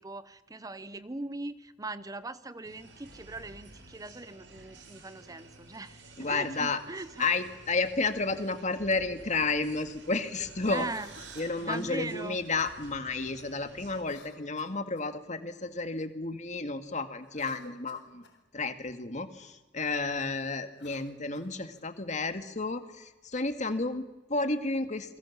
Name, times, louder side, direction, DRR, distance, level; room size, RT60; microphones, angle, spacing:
voice 1, 0.0-7.3 10.7-11.1 11.6-12.4, right 2 dB, 20° right, 13 dB, 0.8 m, -40 dB
sound 1, 2.6-14.0, right 2 dB, 85° right, 4.4 m, -52 dB
voice 2, 6.2-6.8 7.2-10.9 11.4-18.2 18.5-25.2, left 3 dB, 40° left, 8 dB, 1.9 m, -32 dB
Cough, 10.8-11.9 14.0-15.2 17.2-18.4 20.6-21.9, left 3 dB, 70° left, 4.1 m, -55 dB
29.0 x 21.5 x 7.3 m, 1.1 s
head